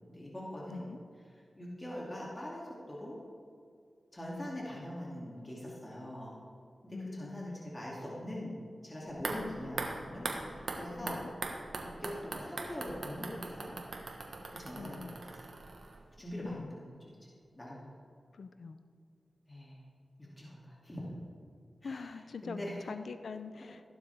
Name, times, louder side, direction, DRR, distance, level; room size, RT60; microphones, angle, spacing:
voice 1, 0.1-0.9 1.6-3.2 4.1-6.3 6.8-11.2 11.8-13.8 14.5-15.3 16.2-17.9 19.5-19.8 20.2-21.0 21.8-22.8, left 1 dB, 25° left, -5 dB, 2.7 m, -43 dB
voice 2, 6.9-7.6 11.0-11.3 14.7-15.2 16.5-16.7 18.3-18.8 21.8-23.8, left 4 dB, 85° left, 10 dB, 0.5 m, -44 dB
sound 1, 9.1-16.2 16.5-16.6, right 3 dB, 75° right, 1.3 m, -41 dB
15.0 x 12.0 x 3.5 m, 2.2 s
wide cardioid pair, 65°, 0 cm